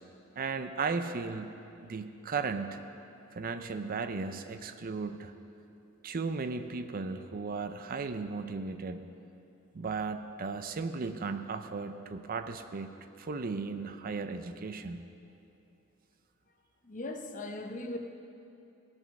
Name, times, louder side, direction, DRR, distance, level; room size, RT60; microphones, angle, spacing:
voice 1, 0.4-1.5 1.8-2.8 3.3-5.3 6.0-9.0 9.7-12.9 13.2-15.0, right 4 dB, 45° right, 9 dB, 0.5 m, -35 dB
voice 2, 16.8-18.0, left 2 dB, 40° left, 5 dB, 0.8 m, -38 dB
17.0 x 6.1 x 6.3 m, 2.7 s
head